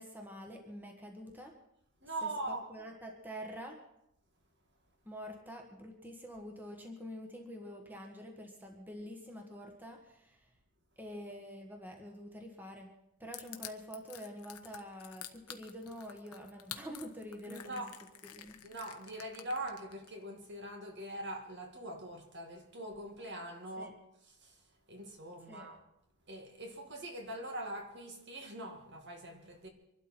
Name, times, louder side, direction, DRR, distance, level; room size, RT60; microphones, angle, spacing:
voice 1, 0.0-1.5 2.2-3.8 5.1-10.4 11.0-12.9 13.2-17.8 18.3-18.6 23.8-23.9 25.5-25.7, equal, 10° right, 1.7 m, -47 dB
voice 2, 2.0-2.7 17.4-17.9 18.6-24.6 24.9-25.8 26.3-29.7, right 1 dB, 50° right, 2.4 m, -42 dB
Crushing, 13.3-20.1, left 11 dB, 90° left, 1.2 m, -48 dB
24.5 x 12.0 x 4.5 m
head